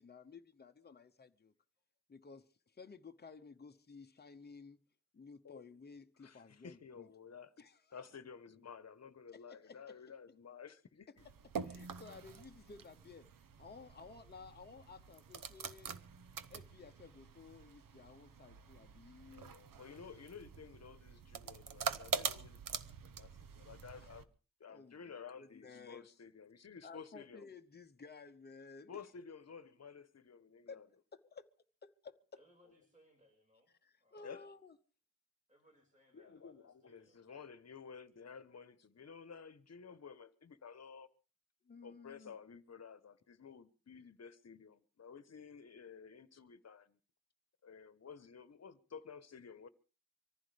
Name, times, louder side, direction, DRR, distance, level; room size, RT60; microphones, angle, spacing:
voice 1, 0.0-1.5 2.1-2.5 2.8-4.8 5.1-7.1 7.6-8.0 9.3-9.9 11.6-13.3 13.6-16.0 16.5-19.6 24.0-24.1 24.7-26.1 26.8-29.0 30.7-30.8 31.1-31.5 31.8-32.2 33.8-34.7 41.7-42.4, left 4 dB, 30° left, 0.9 m, -55 dB
voice 2, 6.2-7.5 7.9-11.3 19.3-22.9 23.2-23.3 23.5-24.3 24.6-27.5 28.9-30.9 32.6-32.7 34.2-34.4 36.1-41.1 41.8-47.0 47.6-49.7, left 6 dB, 50° left, 1.1 m, -53 dB
sound 1, 11.2-24.2, right 6 dB, 85° right, 1.0 m, -45 dB
voice 3, 32.3-33.7 34.0-34.4 35.5-37.5, equal, 25° right, 5.5 m, -69 dB
25.0 x 15.0 x 3.4 m
wide cardioid pair, 160°, 32 cm